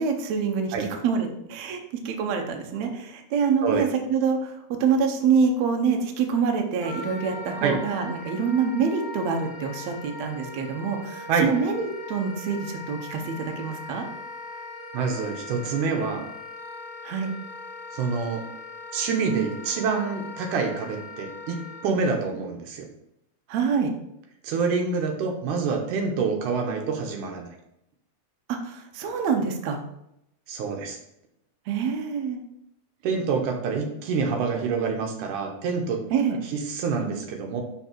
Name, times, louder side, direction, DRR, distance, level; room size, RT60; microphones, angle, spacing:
voice 1, 0.0-1.8 2.1-4.5 4.8-14.1 17.0-17.3 23.5-23.9 28.5-29.8 31.7-32.4 36.1-36.4, right 6 dB, 70° right, 3 dB, 2.0 m, -26 dB
Wind instrument woodwind instrument, 6.8-21.9, left 2 dB, 60° left, 1.4 m, -40 dB
voice 2, 14.9-16.2 17.9-18.4 18.9-21.6 21.8-22.9 24.4-27.5 30.5-31.0 33.0-36.0 36.5-37.6, right 5 dB, 85° right, 3 dB, 2.4 m, -26 dB
5.8 x 5.1 x 4.5 m, 0.80 s
omnidirectional pair, 3.6 m